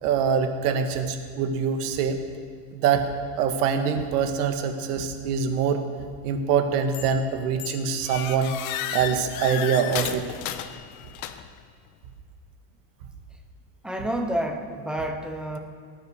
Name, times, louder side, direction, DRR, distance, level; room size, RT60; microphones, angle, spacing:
voice 1, 0.0-2.2 2.7-3.1 3.4-5.8 6.2-8.5 8.9-10.3, right 7 dB, 75° right, 6 dB, 1.8 m, -24 dB
sound 1, 6.9-7.3 7.6-11.6, left 11 dB, 65° left, 1.0 m, -33 dB
voice 2, 13.8-15.6, right 1 dB, ahead, 3 dB, 0.6 m, -29 dB
18.5 x 9.7 x 6.5 m, 2.1 s
cardioid pair, 175°, 46 cm